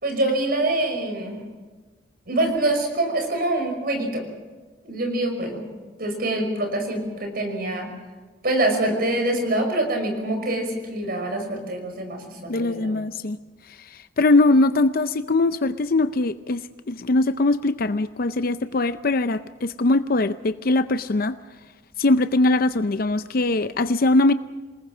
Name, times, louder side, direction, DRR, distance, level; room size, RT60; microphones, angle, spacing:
voice 1, 0.0-1.4 2.3-4.3 4.8-5.6 6.0-7.9 8.4-12.9, right 1 dB, 50° right, 4 dB, 5.7 m, -25 dB
voice 2, 12.5-13.4 13.8-16.6 16.9-21.3 22.0-24.3, left 2 dB, 50° left, 12 dB, 0.6 m, -21 dB
28.0 x 20.0 x 6.1 m, 1.4 s
head